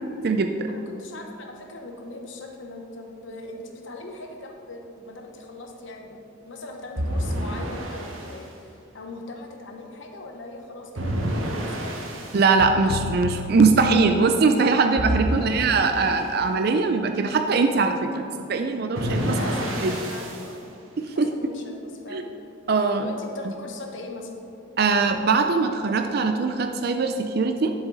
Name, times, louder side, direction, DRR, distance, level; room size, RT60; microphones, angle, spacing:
voice 1, 0.7-12.1 15.3-15.6 19.2-20.7 21.1-22.2 23.0-24.5, left 2 dB, 70° left, 2 dB, 1.1 m, -40 dB
sound 1, 7.0-8.4 10.9-12.5 15.0-16.3 18.9-20.5, equal, 85° right, 1.3 m, -28 dB
voice 2, 12.3-19.4 19.8-20.0 21.0-21.3 22.1-22.2 22.7-23.1 24.8-27.7, right 4 dB, 50° right, 6 dB, 0.4 m, -21 dB
sound 2, 12.6-14.8, left 5 dB, 90° left, 0.3 m, -33 dB
10.0 x 7.3 x 4.0 m, 2.7 s
head